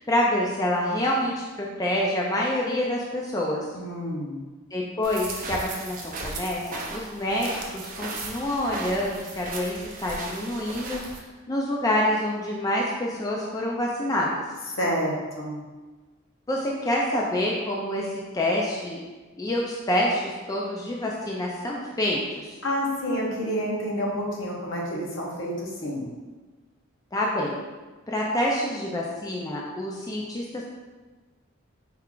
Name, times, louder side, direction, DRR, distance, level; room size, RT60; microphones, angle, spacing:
voice 1, 0.0-3.6 4.7-11.0 11.5-14.3 16.5-18.1 18.3-19.0 19.4-22.5 27.1-27.6 28.1-30.6, left 1 dB, 20° left, -3 dB, 0.3 m, -27 dB
voice 2, 3.7-4.4 14.8-15.6 22.6-26.1, equal, 70° left, -3 dB, 0.9 m, -29 dB
sound 1, 5.0-11.2, right 3 dB, 40° right, 0.5 m, -36 dB
4.4 x 2.4 x 3.7 m, 1.3 s
head